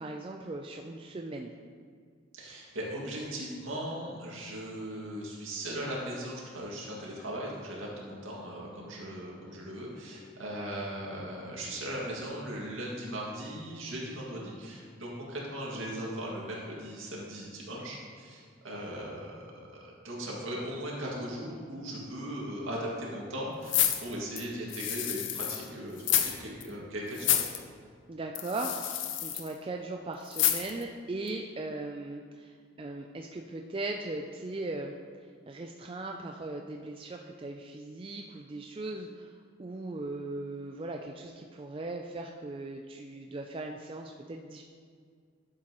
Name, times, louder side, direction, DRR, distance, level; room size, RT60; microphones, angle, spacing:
voice 1, 0.0-1.5 28.1-34.9 35.5-44.6, right 2 dB, 25° right, 2 dB, 0.3 m, -38 dB
voice 2, 2.3-19.4 19.7-27.4, equal, 75° right, -4 dB, 2.1 m, -38 dB
sound 1, 23.7-25.6 26.0-26.4 26.6-26.7 27.1-27.6 28.3-29.5 30.3-30.8 31.3-31.4, left 11 dB, 65° left, 0.6 m, -29 dB
11.5 x 7.4 x 3.0 m, 2.1 s
head